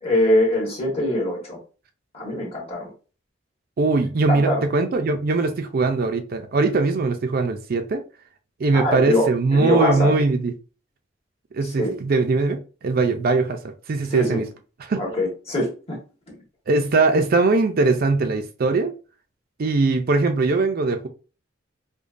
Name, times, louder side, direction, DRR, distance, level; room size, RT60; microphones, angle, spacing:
voice 1, 0.0-1.6 2.1-2.9 4.3-4.6 8.7-10.1 11.6-11.9 14.1-14.4 14.9-16.0 16.3-16.4, left 1 dB, 35° left, 1.4 m, -23 dB
voice 2, 3.8-8.0 8.6-10.5 11.5-13.6 13.9-14.4 14.9-15.0 16.7-18.9 19.6-21.1, right 3 dB, 50° right, 0.4 m, -21 dB
5.0 x 2.2 x 2.5 m
head